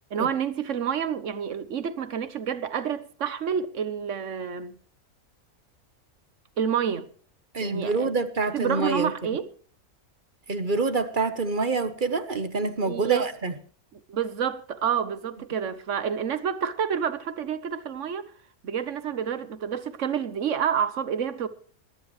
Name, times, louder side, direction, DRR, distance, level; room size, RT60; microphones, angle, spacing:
voice 1, 0.1-4.7 6.6-7.1 7.6-8.1 8.5-9.5 12.8-13.2 14.1-18.3 18.6-21.5, right 8 dB, 55° right, 1.4 m, -28 dB
voice 2, 7.5-9.1 10.5-13.5, right 3 dB, 35° right, 1.1 m, -26 dB
21.5 x 12.5 x 3.2 m
omnidirectional pair, 1.6 m